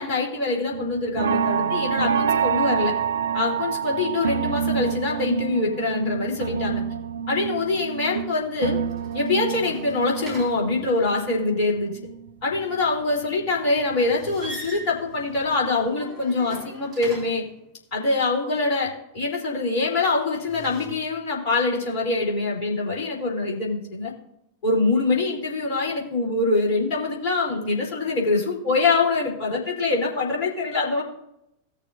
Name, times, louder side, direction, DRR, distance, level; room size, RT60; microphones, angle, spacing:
voice 1, 0.0-2.9 3.3-6.8 7.3-8.8 9.1-11.9 12.4-17.4 17.9-24.1 24.6-31.0, left 3 dB, 45° left, -1 dB, 3.1 m, -24 dB
sound 1, 0.7-12.9 13.2-14.8 15.2-15.5 15.9-16.0, right 7 dB, 65° right, 0.4 m, -28 dB
sound 2, 8.8-11.2 14.0-17.6 20.2-20.9, equal, 20° right, 4.3 m, -42 dB
18.0 x 6.6 x 2.5 m, 0.80 s
figure-of-eight pair, 90°, 0 cm